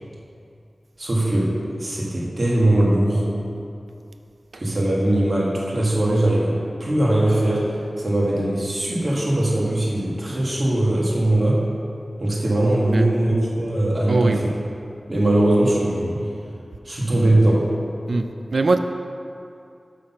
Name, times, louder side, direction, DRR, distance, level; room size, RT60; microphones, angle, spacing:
voice 1, 1.0-3.3 4.5-11.6 12.2-14.5 15.1-16.2 16.9-17.7, right 1 dB, 40° right, -5 dB, 1.7 m, -20 dB
voice 2, 14.1-14.5 18.1-18.2 18.5-18.8, right 3 dB, 65° right, 7 dB, 0.3 m, -20 dB
6.4 x 5.8 x 5.6 m, 2.5 s
wide cardioid pair, 65°, 0 cm